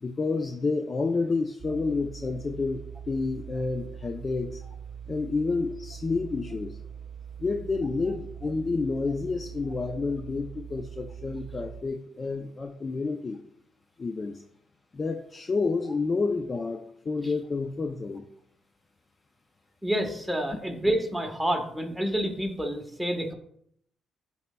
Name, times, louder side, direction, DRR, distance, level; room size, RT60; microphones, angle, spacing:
voice 1, 0.0-4.6 5.1-6.8 7.4-13.4 14.0-14.4 14.9-18.2, left 4 dB, 35° left, 6 dB, 0.4 m, -29 dB
sound 1, 1.6-11.8, right 8 dB, 50° right, 0.3 m, -42 dB
voice 2, 19.8-23.3, right 1 dB, 5° right, 2 dB, 1.2 m, -28 dB
11.0 x 4.1 x 2.2 m, 0.69 s
cardioid pair, 90°, 0 cm